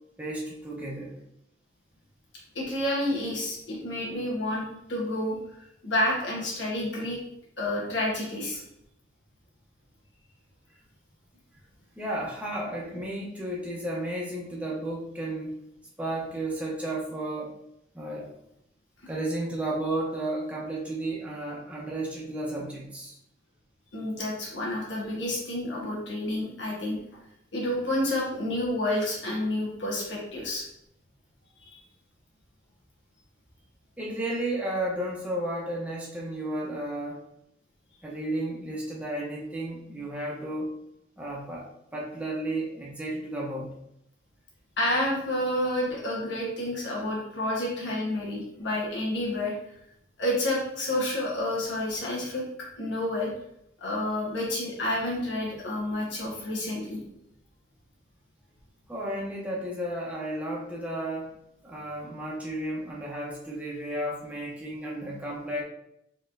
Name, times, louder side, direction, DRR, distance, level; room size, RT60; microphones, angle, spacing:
voice 1, 0.2-1.1 12.0-15.6 16.0-17.5 17.9-18.3 19.1-23.2 34.0-37.2 38.0-40.8 41.2-43.7 58.9-61.3 61.6-65.6, right 1 dB, 5° right, -4 dB, 0.7 m, -33 dB
voice 2, 2.5-7.2 7.6-8.6 23.9-27.0 27.5-30.6 31.6-31.8 44.8-49.5 50.2-52.4 52.8-53.3 53.8-57.0, left 1 dB, 70° left, -4 dB, 1.3 m, -29 dB
4.1 x 3.0 x 2.6 m, 0.78 s
head